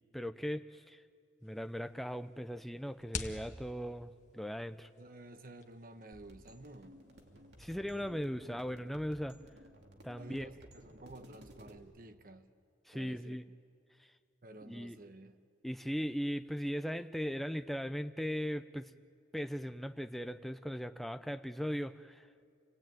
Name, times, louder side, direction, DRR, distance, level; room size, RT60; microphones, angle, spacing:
voice 1, 0.1-1.0 1.4-4.9 7.6-9.4 10.0-10.5 12.9-13.4 14.7-15.0 15.6-18.9 19.3-22.3, equal, ahead, 0.6 m, -38 dB
sound 1, 1.4-7.7, left 4 dB, 40° left, 1.5 m, -49 dB
voice 2, 4.9-6.9 10.2-12.5 12.9-13.4 14.4-15.4, right 2 dB, 50° right, 1.1 m, -52 dB
sound 2, 6.1-11.8, equal, 65° right, 2.7 m, -56 dB
28.0 x 19.0 x 9.2 m
head